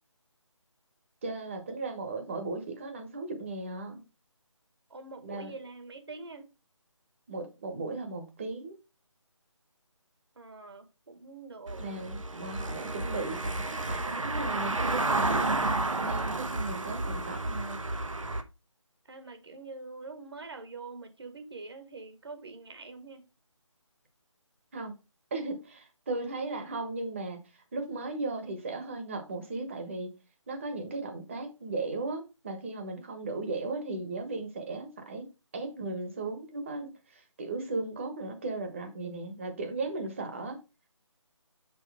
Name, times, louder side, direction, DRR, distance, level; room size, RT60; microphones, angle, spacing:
voice 1, 1.2-4.0 5.2-5.5 7.3-8.8 11.8-15.6 16.0-17.8 24.7-24.9 25.3-27.4 27.7-30.1 30.5-35.3 35.5-40.6, right 3 dB, 25° right, 1.2 m, -36 dB
voice 2, 4.9-6.5 10.3-11.9 19.0-23.3, right 3 dB, 50° right, 1.7 m, -45 dB
Car passing by / Engine, 11.7-18.4, right 2 dB, 80° right, 1.3 m, -31 dB
6.3 x 5.4 x 3.5 m
figure-of-eight pair, 170°, 17 cm